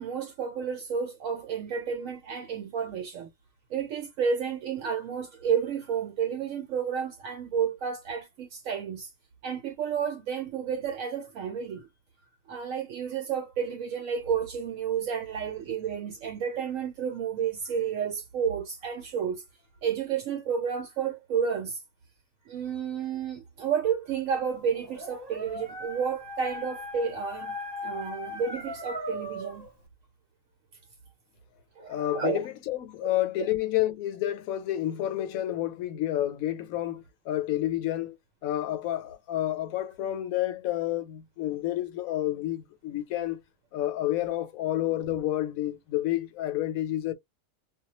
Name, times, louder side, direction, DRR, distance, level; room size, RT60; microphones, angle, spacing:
voice 1, 0.0-3.3 3.7-9.1 9.4-11.9 12.5-19.4 19.8-21.8 22.5-29.7 31.8-32.4, right 7 dB, 75° right, 1.0 m, -31 dB
Dog, 24.6-29.7, left 1 dB, 40° right, 0.4 m, -39 dB
voice 2, 31.9-38.2 38.4-43.4 43.7-47.1, left 13 dB, 80° left, 1.0 m, -29 dB
2.2 x 2.2 x 2.8 m
omnidirectional pair, 1.5 m